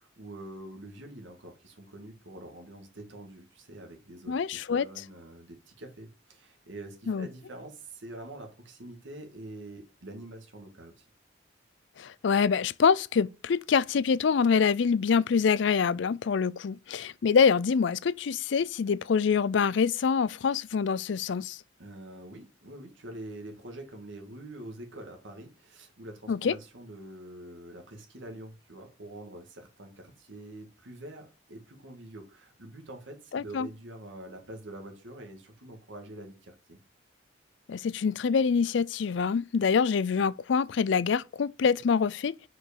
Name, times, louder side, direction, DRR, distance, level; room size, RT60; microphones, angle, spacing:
voice 1, 0.0-11.1 21.8-36.8, right 1 dB, 70° right, 2.0 m, -45 dB
voice 2, 4.3-4.9 7.1-7.3 12.0-21.6 26.3-26.6 33.3-33.7 37.7-42.3, left 6 dB, 65° left, 0.4 m, -25 dB
6.2 x 5.2 x 6.6 m
head